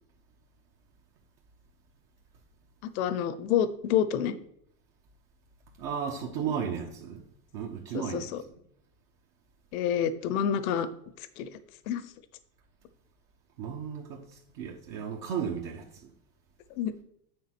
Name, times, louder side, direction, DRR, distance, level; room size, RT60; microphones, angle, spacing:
voice 1, 2.8-4.3 6.5-6.6 7.9-8.4 9.7-10.9 11.4-11.5 11.9-12.0 16.8-17.0, left 9 dB, 65° left, 0.9 m, -28 dB
voice 2, 5.8-7.2 7.5-8.3 13.6-14.2 14.5-15.8, right 7 dB, 50° right, 1.3 m, -34 dB
8.9 x 3.6 x 6.1 m
supercardioid pair, 140°, 46 cm